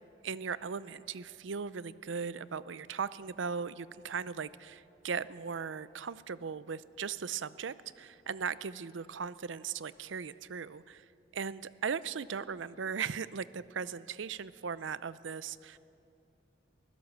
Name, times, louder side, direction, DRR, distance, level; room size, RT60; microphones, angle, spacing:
voice 1, 0.2-11.0 11.3-15.8, right 6 dB, 85° right, 17 dB, 0.6 m, -38 dB
23.0 x 16.0 x 7.5 m, 2.7 s
head